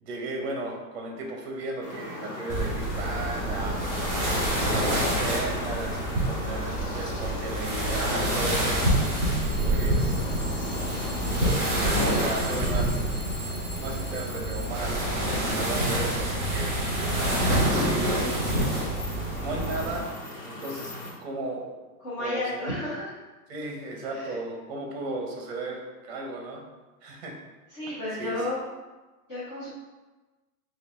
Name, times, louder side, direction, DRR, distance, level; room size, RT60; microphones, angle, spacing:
voice 1, 0.0-3.8 4.7-6.0 6.2-8.8 9.6-10.2 11.4-13.1 13.8-16.7 17.7-18.5 19.4-20.1 20.4-20.9 21.2-21.7 22.2-22.7 23.5-26.7 27.0-27.4 28.2-28.4, right 2 dB, 40° right, 0 dB, 0.9 m, -35 dB
sound 1, 1.8-21.1, left 1 dB, 90° left, 1.4 m, -38 dB
sound 2, 2.5-20.1, right 1 dB, 5° right, 1.0 m, -27 dB
Alarm / Clock, 3.7-3.9 4.4-4.8 5.4-5.8 6.7-6.8 8.8-15.2, equal, 50° left, 0.9 m, -43 dB
voice 2, 9.4-9.8 22.0-23.1 24.0-24.3 27.7-28.6 29.3-29.7, left 1 dB, 20° left, -11 dB, 0.5 m, -33 dB
4.9 x 2.5 x 3.6 m, 1.2 s
supercardioid pair, 170°, 46 cm